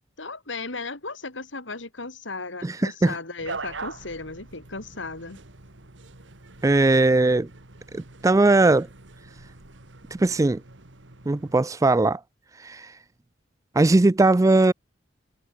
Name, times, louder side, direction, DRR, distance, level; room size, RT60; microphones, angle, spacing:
voice 1, 0.2-5.4, left 3 dB, 80° left, 3.7 m, -36 dB
voice 2, 2.6-3.2 6.6-7.5 7.9-8.9 10.1-10.6 11.3-12.2 12.6-12.9 13.8-14.7, right 2 dB, 15° right, 0.4 m, -19 dB
sound 1, 3.4-11.6, right 3 dB, 75° right, 2.2 m, -43 dB
head